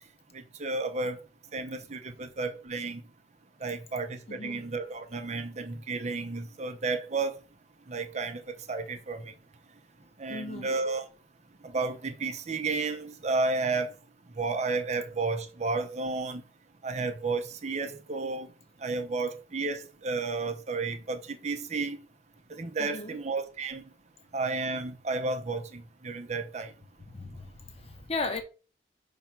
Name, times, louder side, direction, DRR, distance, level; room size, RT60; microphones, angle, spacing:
voice 1, 0.3-1.2 1.5-3.0 3.6-7.4 7.9-8.4 8.7-9.3 10.2-11.1 11.6-13.9 14.4-16.4 16.8-18.5 18.8-22.0 22.5-23.8 24.3-26.7, right 3 dB, 40° right, 0.7 m, -32 dB
voice 2, 4.3-4.6 10.3-10.7 22.8-23.2 27.1-28.4, left 3 dB, 35° left, 1.0 m, -36 dB
5.7 x 3.5 x 5.8 m
head